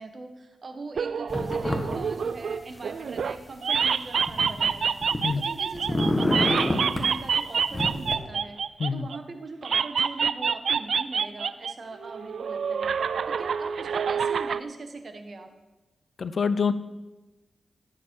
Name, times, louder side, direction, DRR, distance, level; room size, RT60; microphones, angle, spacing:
voice 1, 0.0-8.6 8.9-12.9 13.3-15.5, right 3 dB, 55° right, 6 dB, 1.6 m, -41 dB
sound 1, 1.0-3.4 3.6-9.2 9.6-11.7 12.0-14.6, right 6 dB, 75° right, 0.4 m, -27 dB
sound 2, 1.3-2.0 2.2-3.2 3.8-5.4 5.7-7.1 7.7-8.2, left 1 dB, 20° left, 1.7 m, -27 dB
voice 2, 16.2-16.7, left 5 dB, 60° left, 14 dB, 0.6 m, -26 dB
16.5 x 7.5 x 4.8 m, 1.1 s
cardioid pair, 75°, 0 cm